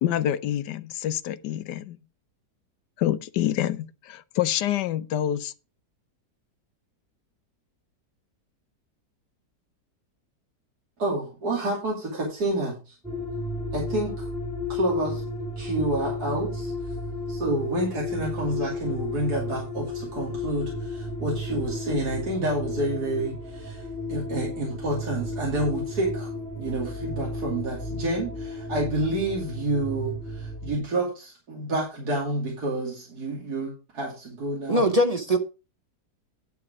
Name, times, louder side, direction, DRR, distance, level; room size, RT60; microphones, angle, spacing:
voice 1, 0.0-2.0 3.0-5.5, left 12 dB, 85° left, 1.3 m, -27 dB
voice 2, 11.0-13.0 13.7-14.3 14.7-15.2 15.6-16.9 17.3-34.9, right 1 dB, 65° right, 3.1 m, -29 dB
sound 1, 13.0-30.8, left 1 dB, 5° left, 2.6 m, -33 dB
voice 3, 34.7-35.4, equal, 35° right, 0.6 m, -21 dB
9.8 x 7.0 x 4.8 m
omnidirectional pair, 1.8 m